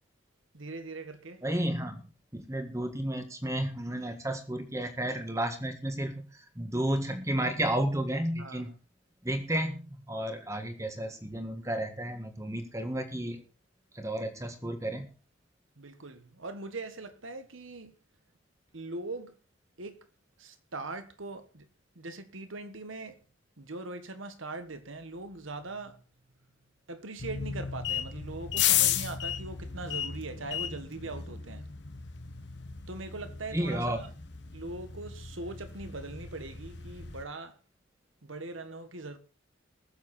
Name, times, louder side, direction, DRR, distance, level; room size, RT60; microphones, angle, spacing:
voice 1, 0.5-1.4 8.4-8.7 15.8-17.9 18.7-19.3 19.8-20.0 20.4-21.7 21.9-23.2 23.6-26.0 26.9-31.7 32.9-34.1 34.5-37.6 38.2-39.2, right 2 dB, 75° right, 1.5 m, -41 dB
voice 2, 1.4-2.0 2.3-6.3 6.6-8.7 9.2-13.4 14.0-15.1 33.5-34.0, right 1 dB, 15° right, 1.6 m, -32 dB
sound 1, 27.2-37.2, left 9 dB, 55° left, 1.2 m, -34 dB
20.0 x 7.4 x 4.2 m
head